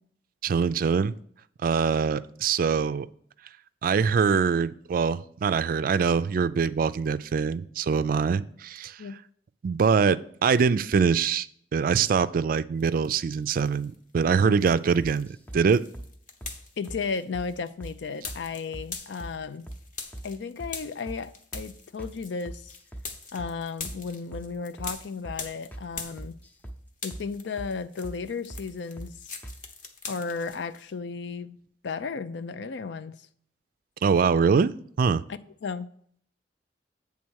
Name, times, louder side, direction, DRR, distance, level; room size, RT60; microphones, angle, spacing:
voice 1, 0.4-1.1 1.6-3.1 3.8-9.0 9.6-11.5 11.7-15.3 15.5-15.8 34.0-34.7 35.0-35.2, right 6 dB, 55° right, 0.3 m, -23 dB
sound 1, 12.8-14.0 14.3-26.7 26.9-30.8, left 4 dB, 50° left, 1.0 m, -43 dB
sound 2, 15.0-15.6 15.9-16.1 16.4-16.6 16.9-17.0 17.3-17.5 17.8-18.0 18.3-18.4 18.7-19.4 19.7-19.8 20.1-20.3 20.6-20.8 21.1-21.2 21.5-21.7 22.0-22.2 22.5-23.1 23.4-23.5 23.8-24.0 24.3-24.5 24.8-24.9 25.2-25.4 25.7-25.9 26.2-26.8 27.1-27.3 27.6-27.7 28.0-28.2 28.5-28.7 29.0-29.1 29.4-29.6, right 1 dB, 10° left, 0.7 m, -41 dB
voice 2, 16.8-19.7 20.2-22.7 23.3-26.3 27.0-29.1 30.1-31.6 31.8-33.2 35.3-35.9, left 5 dB, 90° left, 0.5 m, -34 dB
8.6 x 3.6 x 6.2 m
head